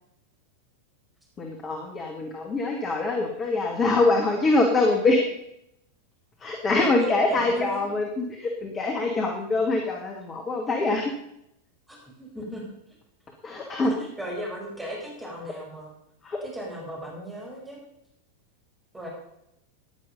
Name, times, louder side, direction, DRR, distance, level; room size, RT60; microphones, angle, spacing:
voice 1, 1.4-5.2 6.4-11.1 13.4-14.1 16.2-16.4, left 2 dB, 25° left, 2 dB, 2.1 m, -24 dB
voice 2, 6.8-7.8 11.9-12.7 14.2-15.9 16.4-17.8 18.9-19.1, equal, 5° right, -3 dB, 4.8 m, -36 dB
14.5 x 10.5 x 5.4 m, 0.79 s
figure-of-eight pair, 90°, 0 cm